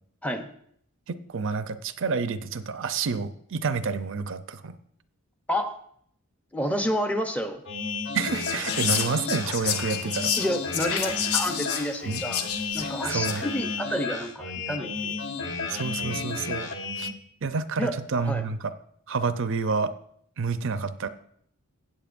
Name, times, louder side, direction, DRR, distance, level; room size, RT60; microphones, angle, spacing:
voice 1, 1.1-4.7 8.1-10.3 12.1-12.2 13.0-13.4 15.7-16.7 17.0-17.1 17.4-18.6 19.1-19.9 20.4-21.1, right 4 dB, 60° right, 11 dB, 0.5 m, -29 dB
voice 2, 6.5-7.6 10.4-12.5 12.7-15.2 17.8-18.0 18.2-18.4, equal, 5° left, 7 dB, 0.6 m, -29 dB
sound 1, 7.7-17.1, left 4 dB, 55° left, 1.1 m, -33 dB
Whispering, 8.3-13.5, left 7 dB, 90° left, 1.0 m, -30 dB
16.0 x 8.6 x 2.5 m, 0.66 s
head